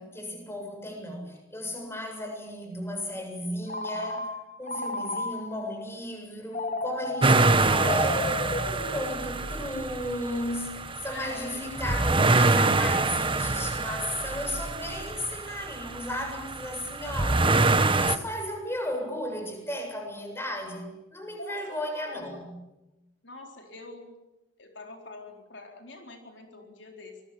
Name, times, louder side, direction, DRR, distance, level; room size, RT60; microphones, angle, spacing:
voice 1, 0.0-4.3 4.6-22.6, left 1 dB, 15° left, 4 dB, 7.6 m, -35 dB
Telephone, 3.7-5.7 6.5-9.6, left 2 dB, 40° left, 2.2 m, -34 dB
sound 1, 7.2-18.2, right 3 dB, 25° right, 1.2 m, -25 dB
voice 2, 11.1-11.6 21.4-22.4 23.2-24.1 24.6-27.2, left 2 dB, 65° left, 3 dB, 4.1 m, -44 dB
26.5 x 21.5 x 8.7 m, 0.99 s
head